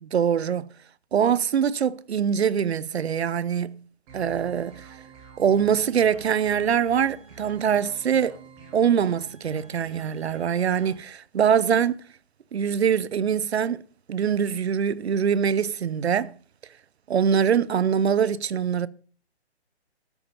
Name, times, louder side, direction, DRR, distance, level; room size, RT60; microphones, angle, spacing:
voice 1, 0.0-0.7 1.1-3.8 4.1-4.9 5.4-8.4 8.7-12.0 12.5-13.8 14.1-16.3 17.1-18.9, right 8 dB, 70° right, 0.9 m, -23 dB
sound 1, 4.1-10.9, right 4 dB, 20° right, 3.2 m, -48 dB
13.0 x 10.0 x 5.6 m
hypercardioid pair, 170°, 33 cm